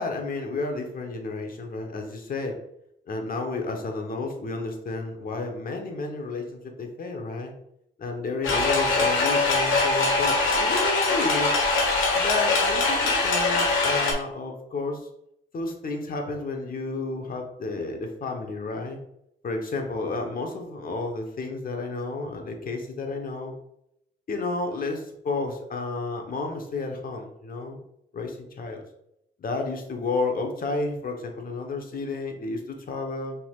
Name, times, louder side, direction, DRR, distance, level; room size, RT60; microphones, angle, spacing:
voice 1, 0.0-2.6 3.1-7.5 8.0-11.5 12.1-15.1 15.5-19.0 19.4-23.5 24.3-27.8 28.1-28.8 29.4-33.4, left 3 dB, 45° left, 3 dB, 1.1 m, -31 dB
sound 1, 8.4-14.1, left 3 dB, 80° left, 1.3 m, -22 dB
5.8 x 3.6 x 2.5 m, 0.77 s
cardioid pair, 90°, 20 cm